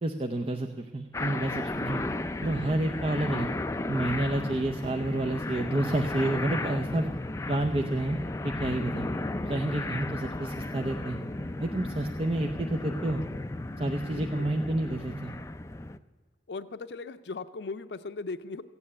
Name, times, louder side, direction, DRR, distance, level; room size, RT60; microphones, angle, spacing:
voice 1, 0.0-2.0 2.4-3.5 3.9-7.1 7.5-8.2 8.4-9.1 9.4-11.2 11.6-13.2 13.8-15.3, right 1 dB, 35° right, 3 dB, 0.6 m, -29 dB
sound 1, 1.1-16.0, left 2 dB, 15° left, 0.4 m, -34 dB
voice 2, 14.2-14.5 16.5-18.6, left 3 dB, 75° left, 11 dB, 0.5 m, -38 dB
15.5 x 8.9 x 8.4 m, 1.5 s
head